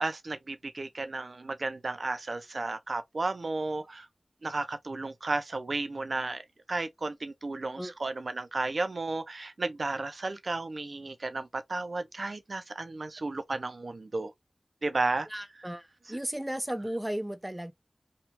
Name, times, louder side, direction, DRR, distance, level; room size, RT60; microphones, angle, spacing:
voice 1, 0.0-4.1 4.4-6.4 6.7-14.3 14.8-15.3, right 3 dB, 80° right, 0.5 m, -33 dB
voice 2, 15.3-17.7, right 1 dB, 15° right, 0.4 m, -35 dB
3.1 x 2.4 x 2.9 m
wide cardioid pair, 50°, 0 cm